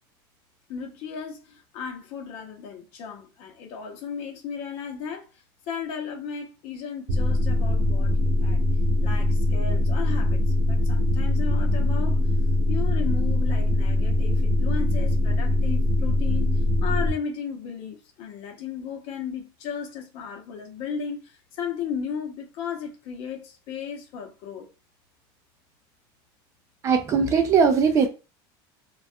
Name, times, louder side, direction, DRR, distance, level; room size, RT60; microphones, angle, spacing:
voice 1, 0.7-5.3 5.7-8.6 9.0-10.4 10.7-12.2 12.7-24.7, left 6 dB, 50° left, 0.7 m, -35 dB
sound 1, 7.1-17.1, left 2 dB, 45° right, 0.8 m, -22 dB
voice 2, 26.8-28.1, right 6 dB, 25° right, 0.3 m, -20 dB
2.6 x 2.3 x 2.2 m
cardioid pair, 165°, 12 cm